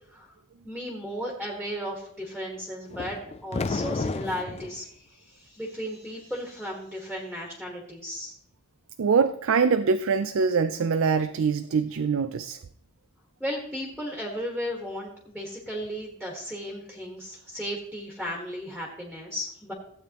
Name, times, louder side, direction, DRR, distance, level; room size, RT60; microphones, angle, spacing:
voice 1, 0.6-8.4 13.4-19.7, equal, ahead, 1.6 m, -35 dB
sound 1, 2.9-4.8, left 3 dB, 30° left, 0.3 m, -31 dB
voice 2, 9.0-12.6, right 5 dB, 65° right, 0.4 m, -24 dB
15.5 x 8.6 x 3.0 m
head